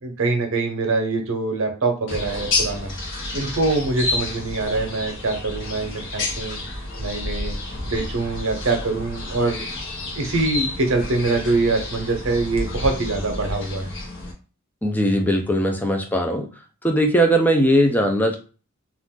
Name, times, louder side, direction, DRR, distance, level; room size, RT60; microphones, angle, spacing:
voice 1, 0.0-2.9 3.3-6.6 7.0-7.5 7.9-9.6 10.1-13.9, right 3 dB, 65° right, 4 dB, 0.7 m, -24 dB
sound 1, 2.1-14.3, left 2 dB, 60° left, 0.9 m, -30 dB
voice 2, 14.8-16.5 16.8-18.4, equal, 10° left, 4 dB, 0.4 m, -19 dB
2.4 x 2.4 x 3.6 m, 0.36 s
head